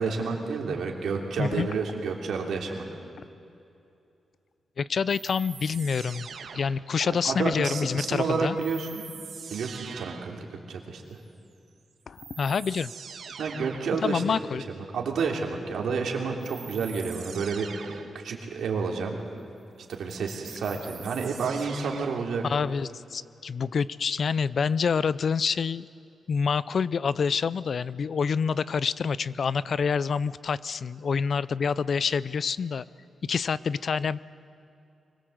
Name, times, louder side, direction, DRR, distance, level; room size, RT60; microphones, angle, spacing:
voice 1, 0.0-2.8 7.2-9.0 9.5-11.2 13.4-14.4 14.7-19.2 19.9-22.4, right 5 dB, 90° right, 1 dB, 3.1 m, -30 dB
voice 2, 4.8-6.3 6.5-8.6 12.1-12.9 14.0-14.6 22.4-25.9 26.3-32.8 33.3-34.2, left 6 dB, 50° left, 19 dB, 0.4 m, -27 dB
sound 1, 5.1-7.1 8.6-10.4 11.7-11.8 12.2-14.0 16.4-18.2 19.9-22.3, right 6 dB, 65° right, 1.4 m, -43 dB
24.0 x 21.0 x 7.9 m, 2.7 s
wide cardioid pair, 145°, 0 cm